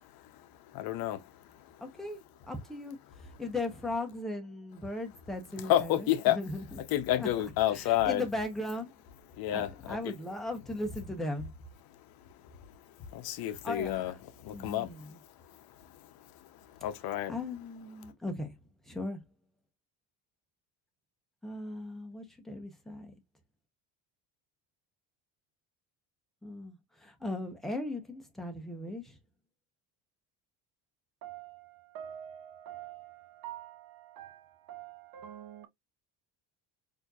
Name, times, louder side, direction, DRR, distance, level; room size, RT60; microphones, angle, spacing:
voice 1, 0.7-1.3 5.7-6.4 6.9-8.2 9.4-10.1 13.1-14.1 14.4-15.2 16.8-17.3, left 13 dB, 55° left, 0.8 m, -29 dB
voice 2, 1.8-2.2 2.5-6.8 7.2-9.0 9.5-11.5 13.4-14.2 14.5-15.2 17.3-18.6 18.8-19.2 21.4-23.1 26.4-29.2, left 2 dB, ahead, 0.8 m, -38 dB
voice 3, 31.2-35.7, right 11 dB, 55° right, 0.9 m, -46 dB
4.2 x 2.8 x 2.3 m
cardioid pair, 155°, 43 cm